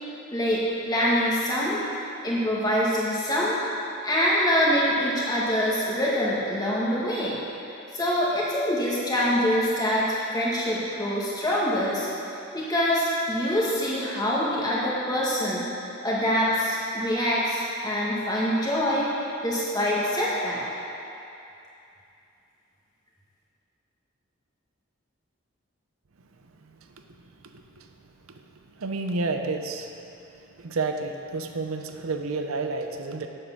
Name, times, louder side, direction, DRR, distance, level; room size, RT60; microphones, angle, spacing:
voice 1, 0.3-1.8 2.2-3.6 4.0-7.4 7.9-12.1 12.5-15.6 16.0-19.1 19.4-20.6, equal, 20° left, -6 dB, 1.8 m, -25 dB
voice 2, 27.4-27.9 28.3-28.4 28.8-29.9 30.6-33.3, right 3 dB, 90° right, 5 dB, 0.7 m, -30 dB
8.4 x 7.8 x 6.0 m, 2.7 s
head